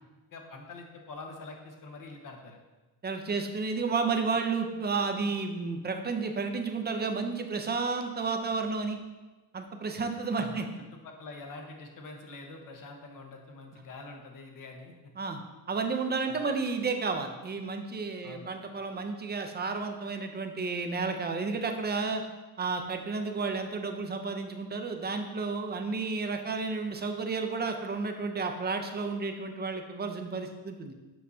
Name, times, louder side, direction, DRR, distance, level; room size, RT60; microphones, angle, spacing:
voice 1, 0.3-2.6 10.4-15.1 15.8-15.9 16.3-16.5 18.2-18.5, left 3 dB, 55° left, 2 dB, 1.1 m, -45 dB
voice 2, 3.0-9.0 9.5-10.7 15.2-15.4 15.7-22.2 22.6-30.9, right 4 dB, 25° right, 5 dB, 0.6 m, -32 dB
7.5 x 5.6 x 2.7 m, 1.2 s
cardioid pair, 125°, 38 cm